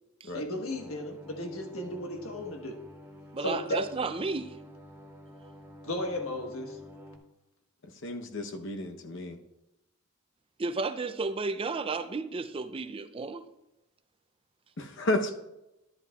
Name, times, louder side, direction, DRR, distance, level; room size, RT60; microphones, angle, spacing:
voice 1, 0.3-2.8 3.4-3.8 5.8-6.8, left 1 dB, 80° left, 1.4 m, -34 dB
sound 1, 0.7-7.2, left 1 dB, 10° right, 1.7 m, -49 dB
voice 2, 3.3-4.6 10.6-13.5, right 3 dB, 25° right, 0.4 m, -33 dB
voice 3, 8.0-9.4 14.8-15.3, left 1 dB, 60° left, 0.8 m, -32 dB
11.5 x 11.0 x 2.4 m
head